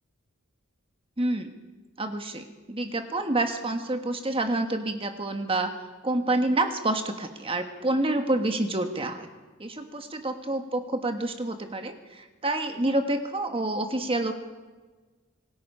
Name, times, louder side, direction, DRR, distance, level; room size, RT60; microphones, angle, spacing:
voice 1, 1.2-1.5 2.0-5.7 6.0-9.3 9.6-14.3, right 2 dB, 25° right, 6 dB, 1.4 m, -28 dB
26.0 x 19.0 x 5.6 m, 1.3 s
head